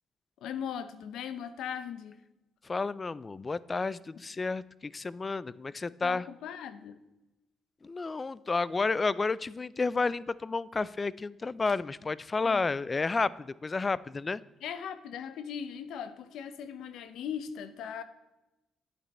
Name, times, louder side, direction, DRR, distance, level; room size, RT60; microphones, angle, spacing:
voice 1, 0.4-2.2 6.0-7.0 12.4-12.8 14.6-18.0, left 8 dB, 80° left, 12 dB, 0.8 m, -39 dB
voice 2, 2.7-6.3 7.8-14.4, left 4 dB, 30° left, 20 dB, 0.4 m, -31 dB
11.0 x 8.8 x 4.3 m, 0.98 s
cardioid pair, 90°, 0 cm